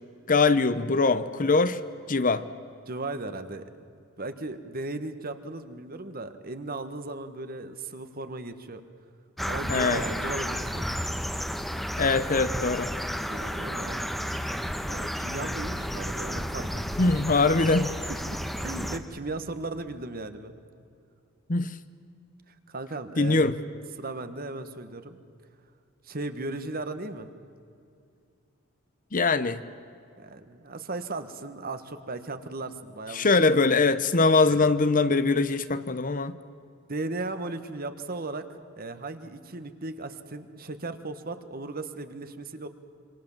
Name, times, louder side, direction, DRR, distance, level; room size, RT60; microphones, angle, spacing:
voice 1, 0.3-1.8 2.1-2.4 9.7-10.0 12.0-12.9 17.0-17.9 21.5-21.8 23.2-23.6 29.1-29.6 33.1-36.4, left 3 dB, 40° left, 0.9 m, -22 dB
voice 2, 2.9-3.7 4.2-8.8 9.5-10.9 13.1-14.1 14.8-16.7 18.1-20.5 22.7-23.4 24.0-25.2 26.0-27.3 30.2-33.6 34.4-34.7 36.9-38.5 38.8-42.7, right 2 dB, 45° right, 1.6 m, -36 dB
sound 1, 9.4-19.0, equal, ahead, 1.3 m, -32 dB
27.0 x 25.5 x 7.4 m
head